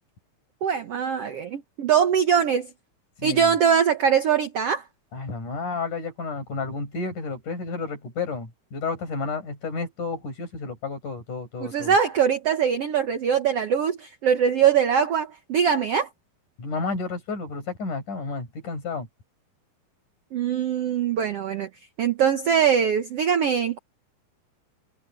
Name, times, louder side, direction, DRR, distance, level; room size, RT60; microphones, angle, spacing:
voice 1, 0.6-2.7 3.2-4.8 11.6-16.1 20.3-21.7 22.0-23.8, right 7 dB, 70° right, 1.5 m, -22 dB
voice 2, 3.2-3.5 5.1-12.0 16.6-19.1, left 4 dB, 55° left, 7.4 m, -31 dB
omnidirectional pair, 4.3 m